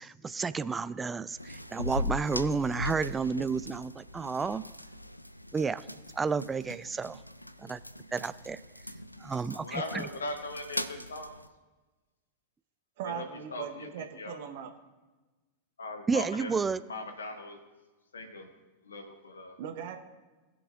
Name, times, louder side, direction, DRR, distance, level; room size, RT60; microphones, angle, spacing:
voice 1, 0.0-4.6 5.5-5.8 6.1-7.2 7.6-7.8 8.1-8.6 9.2-10.1 16.1-16.8, right 5 dB, 15° right, 16 dB, 0.3 m, -31 dB
sound 1, 1.4-11.5, left 1 dB, 90° left, 0.4 m, -40 dB
voice 2, 9.5-11.3 13.0-13.2 13.5-13.9 14.2-14.4 15.8-16.5 16.9-17.6 18.1-18.5 18.9-19.6, left 2 dB, 70° left, 6 dB, 1.0 m, -39 dB
voice 3, 13.0-14.7 19.6-20.0, right 9 dB, 50° right, 6 dB, 0.9 m, -39 dB
20.0 x 7.0 x 2.4 m, 1.2 s
figure-of-eight pair, 90°, 0 cm